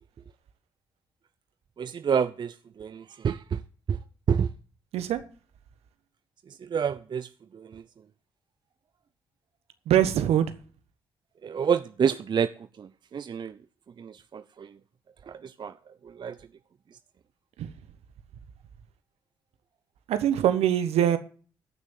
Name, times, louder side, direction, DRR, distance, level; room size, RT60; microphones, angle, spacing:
voice 1, 1.8-3.6 3.9-4.0 4.3-4.5 6.7-7.3 7.5-7.8 11.4-12.5 12.8-13.5 14.0-14.7 15.3-15.7 16.2-16.3, right 7 dB, 45° right, 0.6 m, -28 dB
voice 2, 9.9-10.5 17.6-17.7 20.1-21.2, right 10 dB, 70° right, 1.2 m, -23 dB
14.5 x 6.2 x 7.4 m
hypercardioid pair, 45°, 11 cm